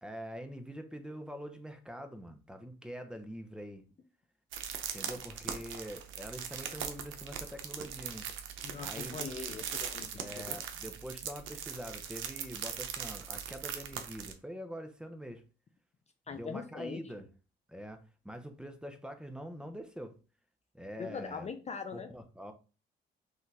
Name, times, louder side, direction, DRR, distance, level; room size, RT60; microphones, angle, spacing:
voice 1, 0.0-3.8 4.9-8.3 8.8-9.3 10.2-15.4 16.3-17.3 17.7-20.2 20.7-21.5 21.9-22.5, equal, 5° right, 0.7 m, -44 dB
sound 1, 4.5-14.3, right 8 dB, 80° right, 0.7 m, -40 dB
voice 2, 8.6-10.6 16.3-17.0 21.0-22.1, left 5 dB, 35° left, 0.5 m, -42 dB
5.6 x 2.5 x 3.3 m
cardioid pair, 90°, 20 cm